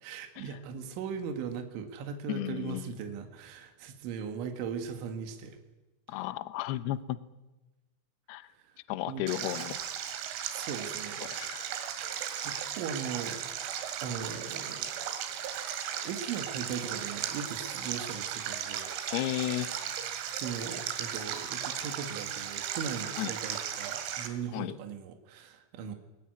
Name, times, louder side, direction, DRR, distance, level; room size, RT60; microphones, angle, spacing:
voice 1, 0.0-5.6 6.1-6.2 9.1-9.3 10.5-11.8 12.4-13.4 14.0-14.9 16.0-18.9 20.3-26.0, right 6 dB, 70° right, 5 dB, 4.1 m, -39 dB
voice 2, 2.3-2.9 6.1-7.2 8.3-8.5 8.9-9.8 11.2-11.7 19.1-19.7 23.2-23.3 24.5-24.8, left 15 dB, 85° left, 13 dB, 2.3 m, -34 dB
Stream, 9.3-24.3, right 9 dB, 90° right, 4.9 m, -36 dB
21.5 x 21.0 x 9.7 m, 1.1 s
omnidirectional pair, 6.0 m